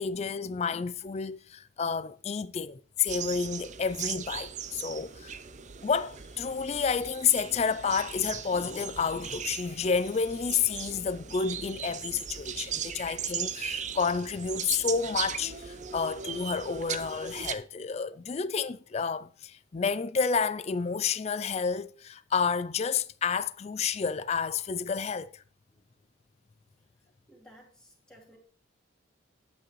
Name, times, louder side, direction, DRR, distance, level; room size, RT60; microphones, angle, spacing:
voice 1, 0.0-5.4 5.8-25.4, left 6 dB, 35° left, 0.3 m, -30 dB
sound 1, 3.1-17.6, right 8 dB, 35° right, 0.5 m, -38 dB
voice 2, 27.3-28.4, equal, 5° left, 2.5 m, -56 dB
10.0 x 8.4 x 3.1 m
head